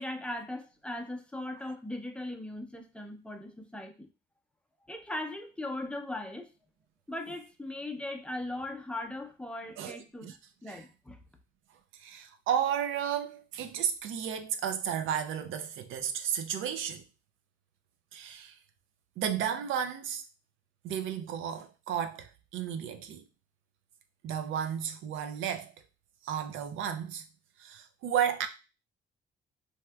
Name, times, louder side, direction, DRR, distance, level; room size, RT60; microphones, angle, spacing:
voice 1, 0.0-4.1 4.9-6.5 7.1-10.3 10.6-11.2, left 1 dB, 5° left, 0.5 m, -39 dB
voice 2, 9.8-10.4 10.7-10.8 11.9-17.0 18.1-18.6 19.2-20.2 20.8-23.2 24.2-25.7 26.2-27.2 27.6-28.5, right 9 dB, 85° right, 0.5 m, -33 dB
3.3 x 2.7 x 2.2 m
cardioid pair, 90°, 20 cm